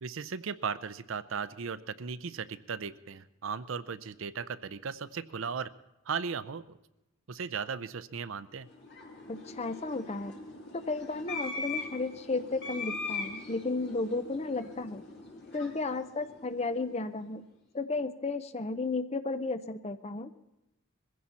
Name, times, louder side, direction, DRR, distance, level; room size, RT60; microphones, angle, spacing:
voice 1, 0.0-5.7 6.1-6.8 7.3-8.7, right 6 dB, 65° right, 15 dB, 0.5 m, -36 dB
sound 1, 8.6-17.1, left 3 dB, 55° left, 2.8 m, -41 dB
voice 2, 9.3-10.3 10.7-15.0 15.5-17.4 17.7-20.3, left 3 dB, 30° left, 11 dB, 0.6 m, -33 dB
21.5 x 15.5 x 4.2 m, 0.94 s
head